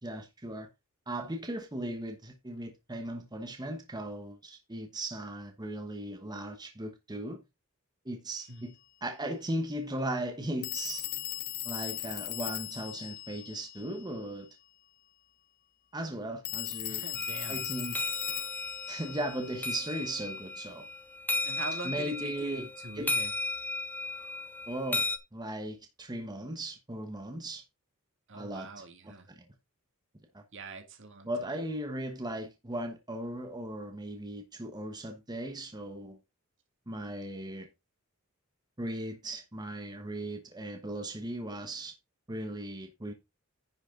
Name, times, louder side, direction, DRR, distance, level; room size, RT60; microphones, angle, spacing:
voice 1, 0.0-0.7 1.1-7.4 8.0-8.7 9.0-11.1 11.6-14.5 15.9-17.0 17.5-18.0 18.9-20.9 21.8-22.7 22.9-23.1 24.7-27.6 28.3-28.7 29.0-29.4 30.3-30.4 31.2-36.2 36.9-37.7 38.8-41.9 42.3-43.1, right 1 dB, 20° right, 1.1 m, -37 dB
Telephone, 8.4-8.5 10.6-14.3 16.4-20.1, left 15 dB, 45° left, 0.5 m, -39 dB
voice 2, 16.9-17.7 21.4-23.3 28.3-29.3 30.5-31.6, right 3 dB, 60° right, 2.3 m, -43 dB
sound 1, 17.2-25.2, left 3 dB, 10° left, 0.9 m, -35 dB
10.5 x 6.3 x 3.7 m
head